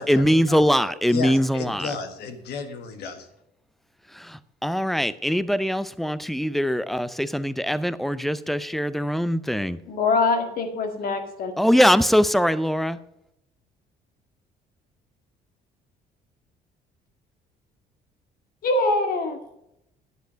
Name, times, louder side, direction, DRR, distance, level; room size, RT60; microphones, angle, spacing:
voice 1, 0.0-2.0 4.1-9.8 11.6-13.0, equal, ahead, 16 dB, 0.5 m, -22 dB
voice 2, 1.1-3.3, left 5 dB, 75° left, 7 dB, 1.5 m, -33 dB
voice 3, 9.9-11.5 18.6-19.4, left 3 dB, 60° left, 6 dB, 2.0 m, -23 dB
10.5 x 8.1 x 5.1 m, 0.83 s
cardioid pair, 110°, 17 cm